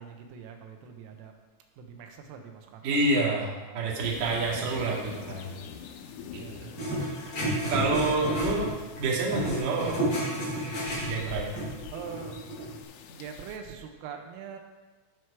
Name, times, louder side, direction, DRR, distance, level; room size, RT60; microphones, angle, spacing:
voice 1, 0.0-1.4 1.8-3.0 3.4-4.1 6.3-7.2 11.9-12.4 13.0-14.6, right 7 dB, 90° right, 4 dB, 3.8 m, -44 dB
voice 2, 2.8-5.5 6.3-6.7 7.7-8.7 9.0-10.0 11.0-11.5, right 3 dB, 50° right, -3 dB, 3.1 m, -28 dB
sound 1, 4.0-13.6, left 8 dB, 85° left, 3.4 m, -44 dB
sound 2, 6.7-9.0 9.3-12.8, right 1 dB, 35° left, 5.1 m, -31 dB
17.5 x 6.3 x 4.8 m, 1.2 s
omnidirectional pair, 5.8 m